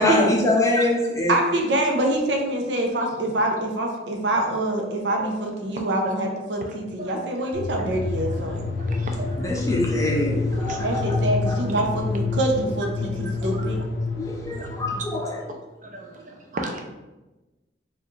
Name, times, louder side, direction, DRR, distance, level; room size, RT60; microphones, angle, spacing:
voice 1, 0.0-1.3 8.9-9.0 9.4-11.1 11.5-11.6 14.2-15.4, left 1 dB, 20° left, -2 dB, 0.6 m, -24 dB
voice 2, 1.3-8.6 10.8-13.8, right 1 dB, 80° right, 2 dB, 0.7 m, -25 dB
sound 1, 7.5-15.4, left 3 dB, 80° left, 0.4 m, -28 dB
voice 3, 8.8-9.6 10.5-10.8 14.5-14.7 15.8-16.8, right 1 dB, 45° right, 3 dB, 0.5 m, -35 dB
4.4 x 2.4 x 3.1 m, 1.1 s
head